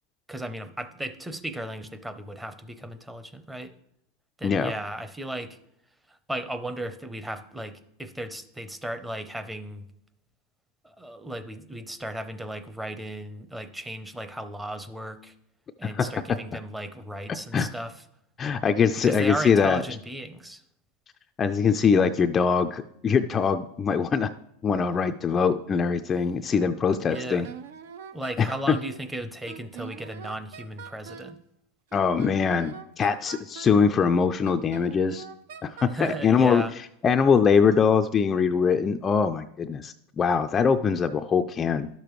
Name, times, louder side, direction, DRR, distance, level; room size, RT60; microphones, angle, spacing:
voice 1, 0.3-3.7 4.4-5.6 6.1-9.8 10.8-15.3 15.8-18.0 19.0-20.6 27.1-27.5 28.1-31.4 35.9-36.7, right 1 dB, 5° right, 9 dB, 0.7 m, -35 dB
voice 2, 18.4-19.8 21.4-24.3 24.6-27.5 28.4-28.8 31.9-35.3 35.6-36.6 37.0-41.9, left 6 dB, 25° left, 7 dB, 0.4 m, -22 dB
Wind instrument woodwind instrument, 27.1-29.0 29.5-31.4 31.9-33.9 34.5-36.3, right 7 dB, 75° right, 0.7 m, -42 dB
12.0 x 6.7 x 3.1 m, 0.77 s
supercardioid pair, 120°, 0 cm